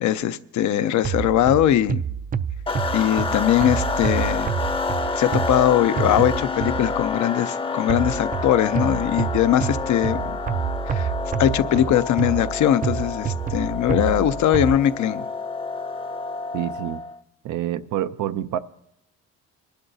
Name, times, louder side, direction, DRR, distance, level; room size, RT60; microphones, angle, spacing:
voice 1, 0.0-2.0 2.9-4.5 5.1-10.4 10.9-11.1 11.4-15.2, left 11 dB, 70° left, 12 dB, 0.6 m, -21 dB
sound 1, 1.0-7.1 7.9-14.7, right 7 dB, 30° right, 0.4 m, -28 dB
sound 2, 2.7-17.2, left 4 dB, 20° left, 0.6 m, -29 dB
voice 2, 16.5-17.0 17.4-18.6, right 12 dB, 80° right, 11 dB, 0.6 m, -27 dB
26.0 x 11.5 x 2.7 m, 0.76 s
cardioid pair, 90°, 30 cm